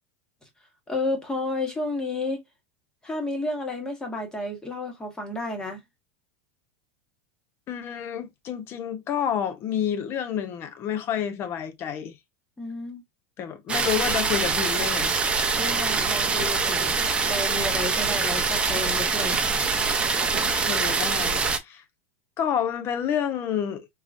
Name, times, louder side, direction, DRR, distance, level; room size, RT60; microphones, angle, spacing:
voice 1, 0.9-2.4 3.0-5.8 12.6-13.0 15.6-16.9 17.2-19.4, left 2 dB, 10° left, 1.4 m, -31 dB
voice 2, 7.7-12.2 13.4-15.2 20.2-21.8 22.4-23.9, left 9 dB, 35° left, 0.8 m, -29 dB
sound 1, 13.7-21.6, right 4 dB, 15° right, 0.7 m, -24 dB
3.8 x 3.0 x 2.6 m
supercardioid pair, 145°, 7 cm